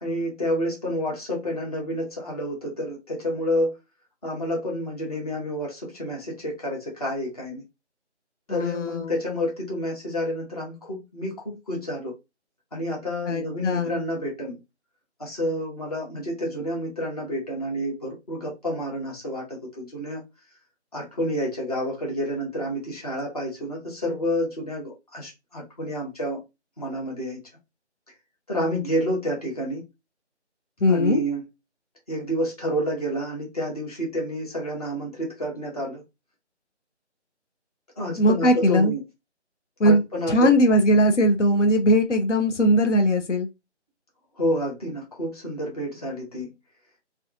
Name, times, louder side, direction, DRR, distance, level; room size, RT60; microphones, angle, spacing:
voice 1, 0.0-3.8 4.2-7.6 8.5-12.1 12.7-14.6 15.2-20.2 20.9-26.4 26.8-27.4 28.5-29.8 30.9-31.5 32.1-36.0 38.0-39.0 39.8-40.8 44.4-46.5, equal, 35° left, 0.8 m, -29 dB
voice 2, 8.5-9.2 13.3-14.0 30.8-31.2 38.2-38.9 39.8-40.0 40.3-43.5, equal, 85° left, 0.7 m, -20 dB
2.7 x 2.3 x 2.3 m
figure-of-eight pair, 170°, 35 cm